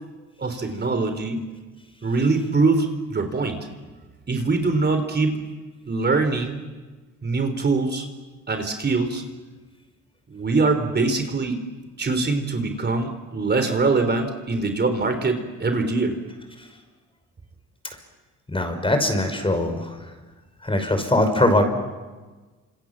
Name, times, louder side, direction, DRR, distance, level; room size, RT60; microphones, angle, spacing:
voice 1, 0.4-1.5 2.0-3.6 4.3-5.4 5.9-6.6 7.2-8.1 8.5-9.2 10.3-11.6 12.0-16.2, right 3 dB, 35° right, 7 dB, 3.7 m, -23 dB
voice 2, 18.5-20.1 20.6-21.6, left 1 dB, 15° left, 7 dB, 5.6 m, -21 dB
29.0 x 27.0 x 7.5 m, 1.3 s
cardioid pair, 90°, 30 cm